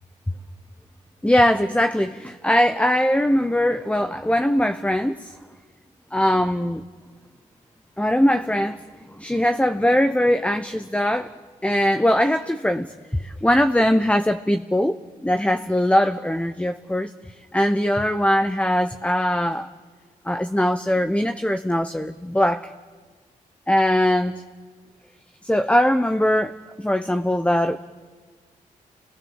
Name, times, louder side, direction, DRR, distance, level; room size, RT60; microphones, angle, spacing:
voice 1, 1.2-5.3 6.1-6.8 8.0-8.8 9.2-11.3 11.6-17.1 17.5-19.7 20.3-22.7 23.7-24.4 25.4-27.8, left 1 dB, 10° left, 9 dB, 1.0 m, -21 dB
29.5 x 21.5 x 7.4 m, 1.5 s
supercardioid pair, 50°, 15 cm